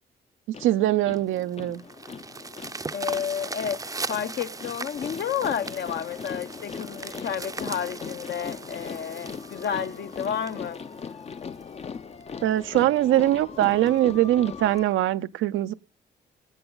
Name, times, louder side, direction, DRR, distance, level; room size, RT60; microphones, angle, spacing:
sound 1, 0.5-14.9, left 6 dB, 30° left, 0.6 m, -40 dB
voice 1, 0.6-1.8 12.4-15.7, right 14 dB, 85° right, 0.6 m, -22 dB
sound 2, 1.1-11.6 12.2-12.3 12.7-12.8 13.2-13.3 13.6-13.9 14.8-14.9, right 3 dB, 15° right, 0.6 m, -39 dB
voice 2, 2.9-10.8, left 8 dB, 60° left, 0.9 m, -31 dB
22.5 x 7.9 x 3.9 m
cardioid pair, 90°, 20 cm